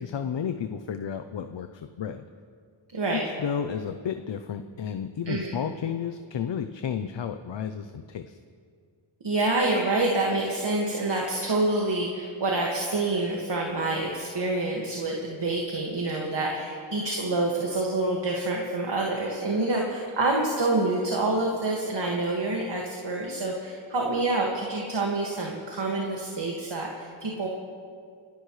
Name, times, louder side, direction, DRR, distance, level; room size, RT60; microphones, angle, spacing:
voice 1, 0.0-2.2 3.1-8.4, left 7 dB, 60° left, 9 dB, 0.7 m, -32 dB
voice 2, 9.2-27.5, right 2 dB, 55° right, -1 dB, 2.0 m, -27 dB
30.0 x 13.0 x 3.2 m, 2.2 s
wide cardioid pair, 80°, 49 cm